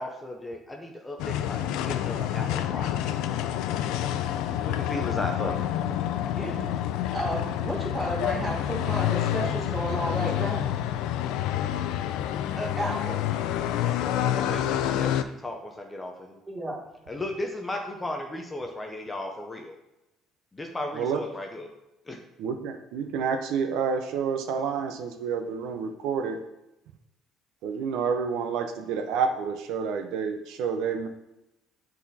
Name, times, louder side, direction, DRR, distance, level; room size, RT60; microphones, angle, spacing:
voice 1, 0.0-3.1 4.6-5.7 12.6-12.7 14.4-16.4 17.1-19.8 20.5-21.7 22.1-22.2, left 1 dB, 10° left, 2 dB, 0.6 m, -35 dB
sound 1, 1.2-15.2, left 11 dB, 80° left, 0.4 m, -28 dB
voice 2, 6.4-6.7 7.1-10.6 12.8-13.2 16.5-16.8, right 1 dB, 15° right, -1 dB, 1.4 m, -32 dB
voice 3, 22.4-26.4 27.6-31.1, right 6 dB, 65° right, 7 dB, 0.6 m, -29 dB
8.5 x 4.1 x 4.1 m, 0.93 s
cardioid pair, 170°, 0 cm